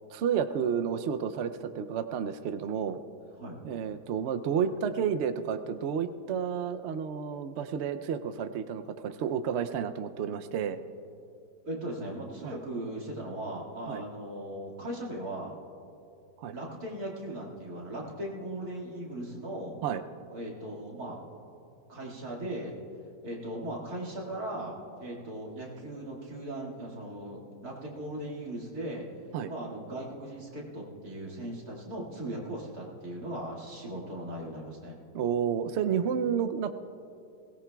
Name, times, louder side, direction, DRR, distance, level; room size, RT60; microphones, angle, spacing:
voice 1, 0.1-3.0 3.6-10.8 12.4-12.5 13.9-14.0 16.4-16.6 19.8-20.0 29.3-29.5 35.1-36.7, right 7 dB, 80° right, 9 dB, 0.6 m, -31 dB
voice 2, 11.6-15.5 16.5-19.8 20.3-21.2 21.9-22.7 23.2-24.7 25.0-29.1 29.5-35.0, right 1 dB, 60° right, -3 dB, 2.6 m, -38 dB
21.0 x 18.0 x 2.3 m, 2.6 s
omnidirectional pair, 1.8 m